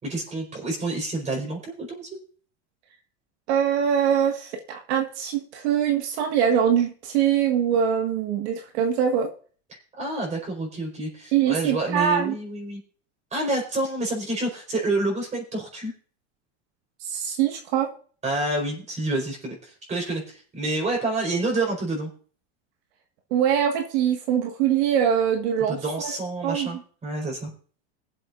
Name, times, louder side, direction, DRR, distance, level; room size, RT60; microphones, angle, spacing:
voice 1, 0.0-2.1 9.7-12.8 13.3-15.9 18.2-22.1 25.7-27.5, right 2 dB, 20° right, 2 dB, 4.5 m, -28 dB
voice 2, 3.5-9.3 11.3-12.4 17.1-17.9 23.3-26.1 26.4-26.7, right 8 dB, 75° right, 3 dB, 1.8 m, -23 dB
22.0 x 7.8 x 2.6 m, 0.42 s
supercardioid pair, 145°, 33 cm